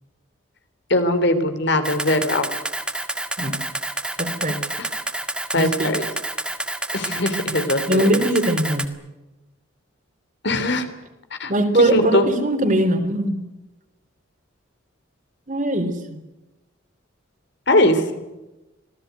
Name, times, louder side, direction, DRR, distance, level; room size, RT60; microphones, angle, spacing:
voice 1, 0.9-2.5 4.8-4.9 5.5-6.0 6.9-8.2 10.4-10.9 11.4-11.5 11.9-12.2 17.7-18.0, left 1 dB, 60° left, 9 dB, 3.3 m, -20 dB
Camera, 1.8-8.9, right 1 dB, 5° right, 1.8 m, -28 dB
voice 2, 4.2-4.6 5.6-5.9 7.9-8.9 11.5-13.4 15.5-16.2, right 1 dB, 40° right, 6 dB, 3.9 m, -21 dB
27.0 x 18.5 x 9.4 m, 1.0 s
head